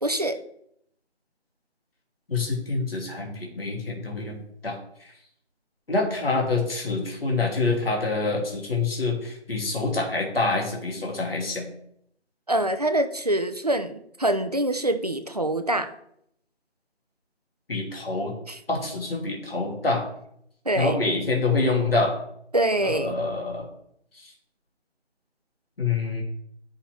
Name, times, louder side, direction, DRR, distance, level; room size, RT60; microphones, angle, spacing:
voice 1, 0.0-0.4 12.5-15.9 18.5-18.6 20.7-21.0 22.5-23.2, right 1 dB, 35° right, 8 dB, 0.5 m, -25 dB
voice 2, 2.3-4.4 4.6-5.1 5.9-11.7 17.7-18.3 18.7-20.0 20.7-22.2 22.8-23.7 24.2-24.3 25.8-26.2, left 3 dB, 60° left, 0 dB, 1.8 m, -26 dB
9.7 x 5.7 x 2.9 m, 0.72 s
figure-of-eight pair, 155°, 34 cm